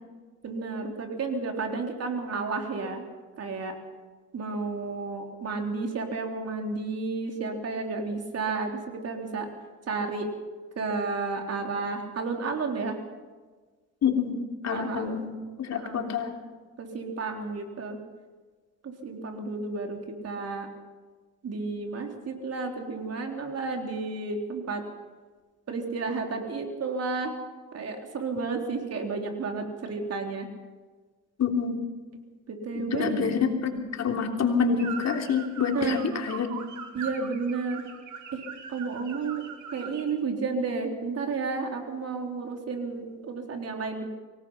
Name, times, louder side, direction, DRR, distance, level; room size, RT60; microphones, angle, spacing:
voice 1, 0.4-3.0 3.4-3.8 4.3-9.5 9.9-10.3 10.8-13.0 14.7-15.3 15.7-16.1 16.8-18.0 18.8-20.7 21.4-24.8 25.7-27.3 27.7-30.5 32.5-33.2 35.7-36.0 36.9-37.8 38.3-38.4 38.7-39.4 39.7-44.1, right 4 dB, 55° right, 3 dB, 4.0 m, -32 dB
voice 2, 14.0-16.3 31.4-31.8 32.7-36.5, left 6 dB, 60° left, 3 dB, 3.3 m, -27 dB
sound 1, 34.8-40.1, right 6 dB, 75° right, 2.8 m, -41 dB
24.5 x 18.5 x 5.8 m, 1.4 s
cardioid pair, 90°, 30 cm